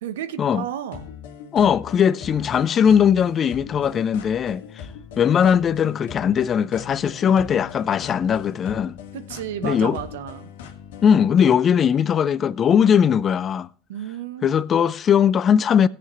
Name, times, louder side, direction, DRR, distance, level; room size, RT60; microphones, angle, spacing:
voice 1, 0.0-1.1 9.1-10.5 13.9-14.6, right 10 dB, 80° right, 0.8 m, -32 dB
sound 1, 0.9-11.2, left 8 dB, 75° left, 1.5 m, -40 dB
voice 2, 1.5-4.9 5.2-9.0 9.6-10.0 11.0-13.7 14.4-15.9, left 8 dB, 40° left, 0.5 m, -19 dB
17.0 x 7.9 x 3.0 m
hypercardioid pair, 80°, 0 cm